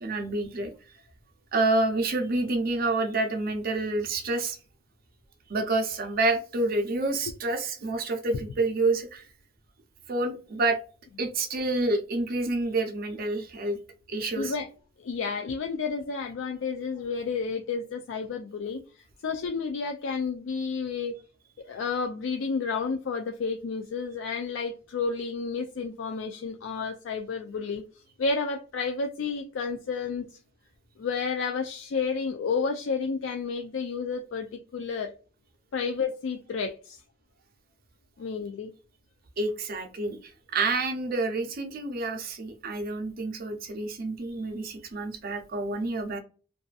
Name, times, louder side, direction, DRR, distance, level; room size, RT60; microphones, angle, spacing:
voice 1, 0.0-0.7 1.5-4.6 5.5-9.2 10.1-10.8 11.2-13.8 14.1-14.5 39.4-46.2, right 2 dB, 50° right, 0.6 m, -28 dB
voice 2, 14.3-14.7 15.0-21.2 21.6-27.8 28.2-30.4 31.0-35.1 35.7-37.0 38.2-38.7, left 5 dB, 75° left, 0.4 m, -31 dB
2.6 x 2.4 x 2.2 m
head